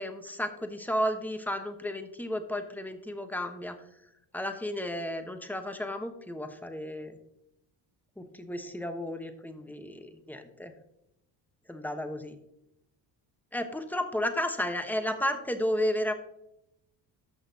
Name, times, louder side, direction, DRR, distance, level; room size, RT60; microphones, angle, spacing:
voice 1, 0.0-3.8 4.3-7.1 8.2-10.7 11.7-12.4 13.5-16.1, left 1 dB, 5° left, 7 dB, 1.0 m, -33 dB
13.5 x 5.9 x 2.8 m, 0.82 s
cardioid pair, 90°, 45 cm